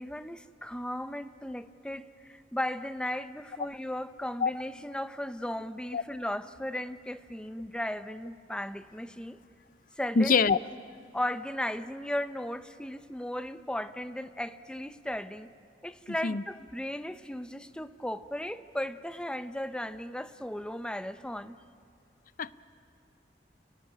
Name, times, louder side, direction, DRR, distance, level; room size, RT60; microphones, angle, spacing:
voice 1, 0.0-9.4 10.0-10.3 11.1-15.5 15.8-21.6, left 1 dB, 5° left, 11 dB, 0.6 m, -36 dB
voice 2, 10.1-10.6 16.2-16.4 22.4-22.5, left 4 dB, 50° left, 16 dB, 0.5 m, -24 dB
29.5 x 15.0 x 9.9 m, 2.4 s
head